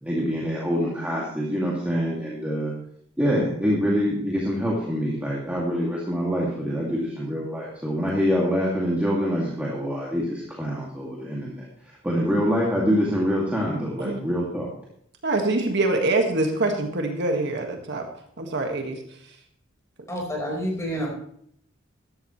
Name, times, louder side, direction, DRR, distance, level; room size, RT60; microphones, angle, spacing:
voice 1, 0.0-2.7 3.2-11.7 12.0-14.7, equal, 5° right, -5 dB, 2.3 m, -25 dB
voice 2, 15.2-18.0 18.4-19.0, right 2 dB, 60° right, 3 dB, 1.7 m, -24 dB
voice 3, 20.1-21.1, equal, 15° left, -1 dB, 4.6 m, -28 dB
13.5 x 12.5 x 3.2 m, 0.67 s
head